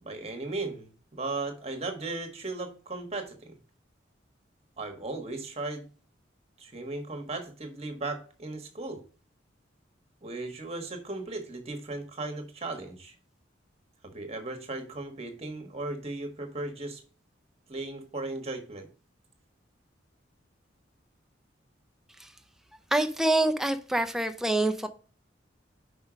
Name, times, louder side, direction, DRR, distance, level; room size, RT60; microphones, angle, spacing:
voice 1, 0.0-3.6 4.8-5.9 6.6-9.0 10.2-13.1 14.0-17.0 17.7-18.9, right 2 dB, 30° right, 1.3 m, -36 dB
voice 2, 22.9-24.9, right 1 dB, ahead, 0.5 m, -26 dB
5.5 x 5.3 x 5.0 m
head